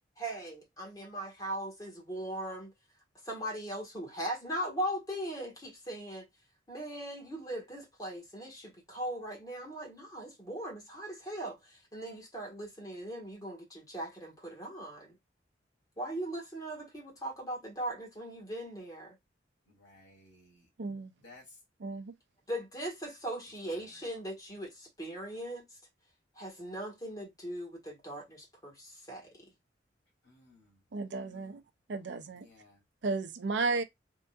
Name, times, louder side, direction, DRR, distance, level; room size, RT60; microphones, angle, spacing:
voice 1, 0.2-2.7 3.2-6.3 6.7-15.2 16.0-19.2 22.5-25.8 26.4-29.3, right 1 dB, 20° left, 1.4 m, -39 dB
voice 2, 19.7-20.7 21.2-21.6 23.6-24.0 30.2-30.8 31.2-31.6 32.3-32.8, left 2 dB, 80° left, 1.8 m, -58 dB
voice 3, 20.8-21.1 21.8-22.1 30.9-31.6 31.9-32.5 33.0-33.8, right 3 dB, 70° right, 0.5 m, -33 dB
3.6 x 2.6 x 2.3 m
head